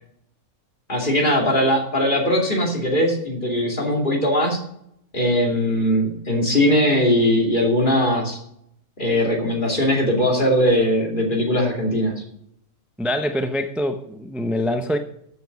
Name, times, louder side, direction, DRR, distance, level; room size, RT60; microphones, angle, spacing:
voice 1, 0.9-4.6 5.1-8.4 9.0-12.1, equal, 35° left, 2.7 m, -20 dB
voice 2, 13.0-15.0, left 1 dB, ahead, 0.4 m, -24 dB
14.0 x 8.0 x 5.2 m
omnidirectional pair, 1.5 m